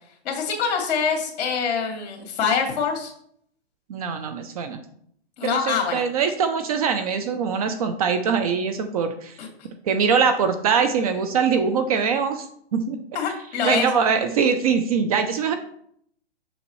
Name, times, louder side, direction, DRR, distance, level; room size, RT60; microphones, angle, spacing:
voice 1, 0.2-3.1 5.4-6.0 9.4-9.5 13.1-13.9, left 6 dB, 40° left, 0 dB, 2.3 m, -25 dB
voice 2, 3.9-4.8 5.4-9.3 9.8-13.0 13.6-15.5, right 6 dB, 35° right, 8 dB, 0.6 m, -23 dB
7.0 x 6.4 x 3.1 m, 0.65 s
hypercardioid pair, 145°, 32 cm